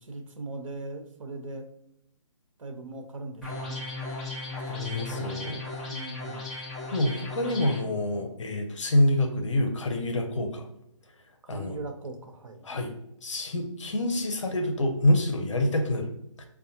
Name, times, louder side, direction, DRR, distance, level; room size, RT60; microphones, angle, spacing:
voice 1, 0.0-1.7 2.6-3.9 4.7-5.3 5.8-6.5 11.4-12.7, right 2 dB, 75° right, 5 dB, 0.8 m, -40 dB
sound 1, 3.4-7.8, left 2 dB, ahead, 1.2 m, -36 dB
voice 2, 4.5-5.6 6.9-10.7 11.5-11.8 12.6-12.9 13.2-16.5, left 1 dB, 65° left, 5 dB, 0.8 m, -27 dB
5.0 x 2.3 x 2.7 m, 0.79 s
figure-of-eight pair, 145°, 17 cm